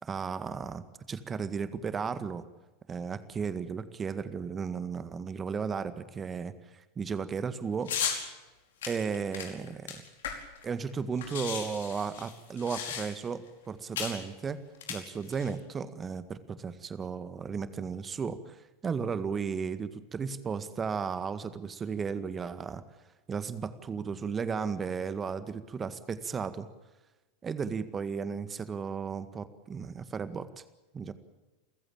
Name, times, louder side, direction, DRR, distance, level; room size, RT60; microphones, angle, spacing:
voice 1, 0.0-2.4 2.9-7.9 8.9-10.0 10.6-14.6 14.9-18.6 18.8-22.8 23.3-26.7 27.4-30.5 30.9-31.1, right 6 dB, 25° right, 13 dB, 1.8 m, -34 dB
sound 1, 7.9-8.2 8.8-10.6 10.9-11.0 11.2-13.3 14.0-14.2 14.7-15.5, left 7 dB, 65° left, 5.0 m, -35 dB
29.0 x 15.0 x 8.8 m, 1.1 s
figure-of-eight pair, 85°, 0 cm